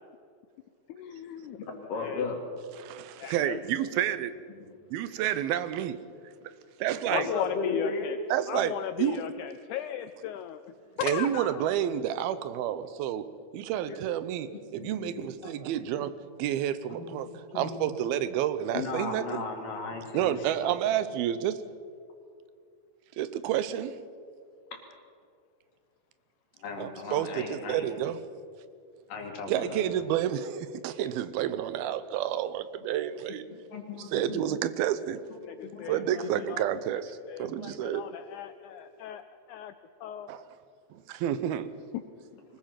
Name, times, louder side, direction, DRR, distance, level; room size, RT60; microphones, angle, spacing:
voice 1, 0.9-1.6 1.9-2.3 3.2-3.6 7.1-8.2 8.5-10.6 11.0-11.6 35.4-36.7 37.3-39.2 39.5-39.7 40.0-40.3 41.9-42.0, left 10 dB, 90° left, 1.7 m, -36 dB
voice 2, 1.6-2.4 4.6-4.7 7.1-8.1 13.9-14.0 14.5-15.5 16.9-17.9 18.7-20.8 24.7-24.8 26.6-27.9 29.1-30.0 33.5-34.4 35.6-36.6, left 4 dB, 65° left, 4.1 m, -36 dB
voice 3, 2.8-4.3 4.9-6.0 6.8-7.3 8.3-9.2 11.0-13.3 13.5-17.3 17.6-19.4 20.1-21.6 23.2-24.0 26.8-28.2 29.5-33.4 34.1-35.2 35.9-38.1 40.3-40.4 40.9-41.7, right 11 dB, 90° right, 2.7 m, -30 dB
23.5 x 20.0 x 5.9 m
omnidirectional pair, 4.2 m